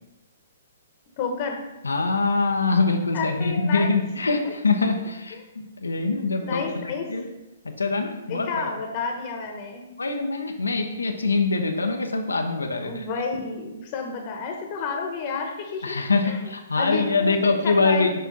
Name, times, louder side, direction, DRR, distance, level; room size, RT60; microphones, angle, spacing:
voice 1, 1.2-1.6 3.1-3.9 4.4-4.5 6.4-7.1 8.3-9.8 12.8-16.4 16.7-18.1, left 4 dB, 40° left, 3 dB, 1.1 m, -30 dB
voice 2, 1.8-7.3 7.6-8.7 10.0-13.1 15.8-18.1, left 3 dB, 85° left, 4 dB, 0.7 m, -24 dB
6.6 x 4.5 x 4.0 m, 1.0 s
hypercardioid pair, 125°, 0 cm